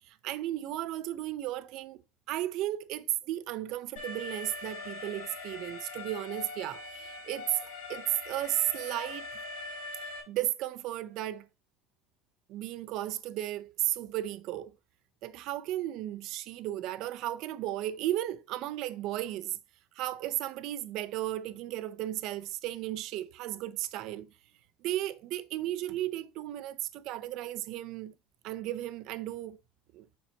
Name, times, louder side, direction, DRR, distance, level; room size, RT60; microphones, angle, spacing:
voice 1, 0.1-2.0 2.3-7.6 7.9-9.3 10.3-11.5 12.5-14.7 15.2-19.6 20.0-24.3 24.8-28.1 28.4-29.6 29.9-30.1, right 14 dB, 50° right, 0.5 m, -34 dB
Alarm, 4.0-10.2, left 3 dB, 90° left, 2.7 m, -42 dB
7.1 x 5.5 x 2.8 m
cardioid pair, 170°, 0 cm